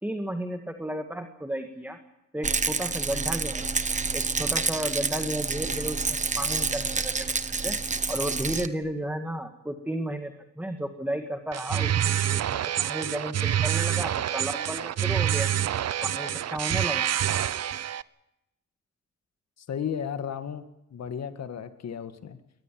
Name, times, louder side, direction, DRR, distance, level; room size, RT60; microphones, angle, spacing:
voice 1, 0.0-2.0 2.3-3.7 4.1-7.3 7.6-7.7 8.1-15.5 16.0-17.1, right 1 dB, 5° right, 6 dB, 1.9 m, -33 dB
Rattle, 2.4-8.7, right 4 dB, 25° right, 1.3 m, -28 dB
sound 1, 11.5-18.0, right 10 dB, 60° right, 0.8 m, -27 dB
voice 2, 19.7-20.7 20.9-22.4, left 8 dB, 60° left, 9 dB, 2.0 m, -34 dB
23.0 x 19.5 x 7.7 m, 0.86 s
cardioid pair, 115°, 30 cm